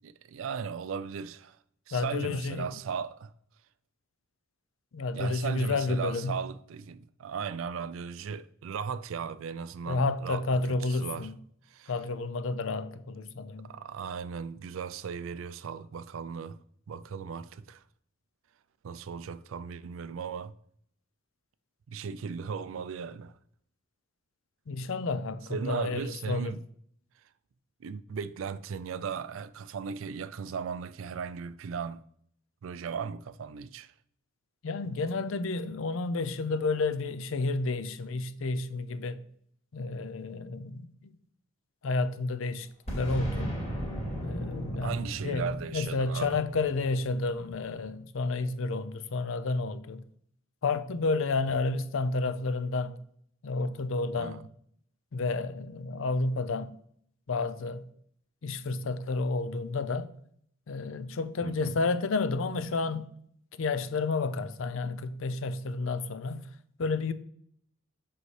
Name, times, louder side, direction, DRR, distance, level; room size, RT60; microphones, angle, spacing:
voice 1, 0.0-1.6 1.9-3.3 5.1-11.3 11.7-11.9 13.6-16.6 16.9-17.8 18.8-20.5 21.9-23.4 25.5-26.6 27.8-32.0 32.6-33.9 44.8-46.4 54.1-54.4 61.4-61.7, right 6 dB, 70° right, 0.4 m, -37 dB
voice 2, 1.9-2.7 4.9-6.4 9.9-11.3 11.9-13.7 24.7-26.6 34.6-39.2 39.7-41.2 41.8-42.7 42.9-43.5 44.2-50.0 50.6-52.9 53.4-54.4 55.1-56.7 57.3-57.9 58.4-60.1 60.7-63.1 63.5-66.4 66.8-67.1, left 3 dB, 70° left, 0.5 m, -31 dB
Boom, 42.9-47.5, equal, 35° left, 2.4 m, -36 dB
7.7 x 5.5 x 3.2 m
head